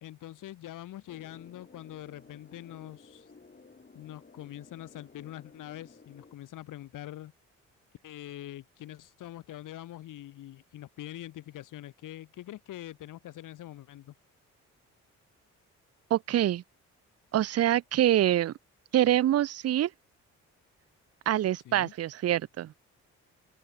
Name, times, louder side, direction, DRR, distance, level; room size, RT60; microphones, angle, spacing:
voice 1, 0.0-3.3 3.9-7.3 8.0-14.1 21.6-21.9, left 13 dB, 70° left, 1.4 m, -44 dB
sound 1, 1.1-6.4, left 4 dB, 30° left, 4.0 m, -55 dB
voice 2, 16.1-16.6 17.3-18.5 18.9-19.9 21.3-22.7, right 12 dB, 50° right, 0.6 m, -25 dB
open air
supercardioid pair, 60°, 33 cm